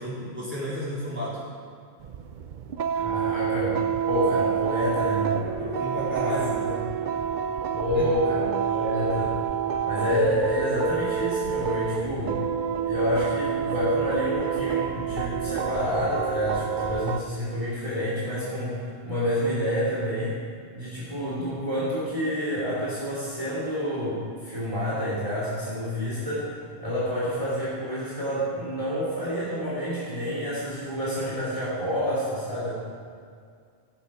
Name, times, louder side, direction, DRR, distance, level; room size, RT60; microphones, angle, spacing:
voice 1, 0.0-1.4 5.4-6.6 7.9-8.1, equal, 10° right, -9 dB, 3.8 m, -32 dB
sound 1, 2.0-17.2, right 8 dB, 55° right, 0.6 m, -28 dB
voice 2, 3.0-5.5 6.2-6.8 7.7-9.4 9.8-12.4 12.8-20.3 20.7-26.5 26.8-32.7, equal, 30° right, -8 dB, 2.9 m, -28 dB
17.0 x 7.5 x 4.9 m, 2.2 s
omnidirectional pair, 1.1 m